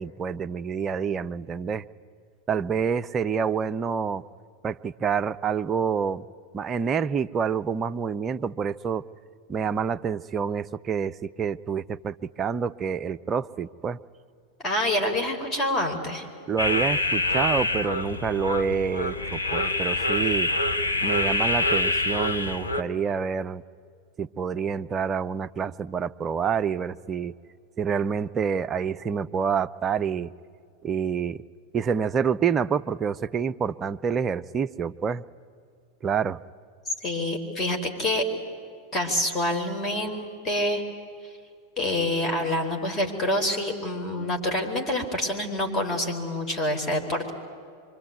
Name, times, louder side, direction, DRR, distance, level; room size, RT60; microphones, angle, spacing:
voice 1, 0.0-1.9 2.5-4.2 4.6-6.2 6.5-9.0 9.5-14.0 16.5-20.5 21.0-23.6 24.2-27.3 27.8-30.3 30.8-31.4 31.7-35.2 36.0-36.4, right 6 dB, 25° right, 11 dB, 0.6 m, -27 dB
voice 2, 14.6-16.3 37.0-38.2 38.9-40.8 41.8-47.3, left 1 dB, 20° left, 3 dB, 4.5 m, -27 dB
sound 1, 16.6-22.8, left 2 dB, 80° left, 1.2 m, -26 dB
25.5 x 24.5 x 9.6 m, 2.3 s
figure-of-eight pair, 90°, 0 cm